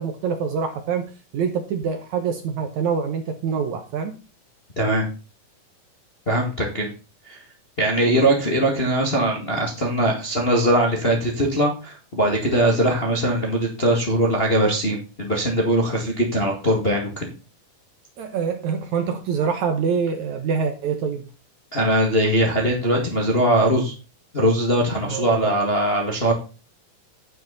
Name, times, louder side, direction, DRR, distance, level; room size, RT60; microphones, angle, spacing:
voice 1, 0.0-4.2 18.2-21.2 25.1-25.6, right 6 dB, 65° right, 6 dB, 2.0 m, -25 dB
voice 2, 6.3-6.9 7.2-7.4 7.8-17.3 21.7-23.9 24.3-26.3, right 1 dB, 25° left, -1 dB, 1.3 m, -21 dB
9.3 x 9.2 x 4.0 m, 0.34 s
omnidirectional pair, 4.2 m